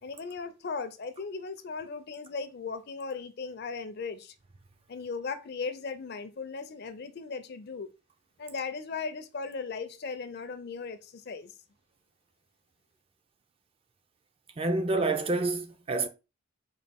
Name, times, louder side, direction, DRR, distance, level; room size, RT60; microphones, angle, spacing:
voice 1, 0.0-4.3 4.9-7.9 8.4-11.5, left 4 dB, 50° left, 0.4 m, -37 dB
voice 2, 14.6-16.1, right 2 dB, 25° right, 0.4 m, -28 dB
4.1 x 2.3 x 3.5 m
head